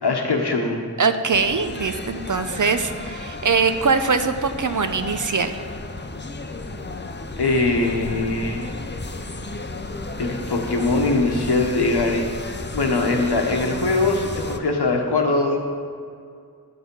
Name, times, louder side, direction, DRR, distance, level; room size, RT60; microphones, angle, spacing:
voice 1, 0.0-0.9 7.4-8.7 10.2-12.3 12.7-15.6, left 2 dB, 90° left, 2 dB, 1.3 m, -21 dB
voice 2, 1.0-5.5, right 5 dB, 50° right, 9 dB, 0.7 m, -22 dB
sound 1, 1.3-14.6, left 2 dB, 30° left, 0.6 m, -33 dB
11.0 x 6.9 x 5.5 m, 2.3 s
wide cardioid pair, 70°, 38 cm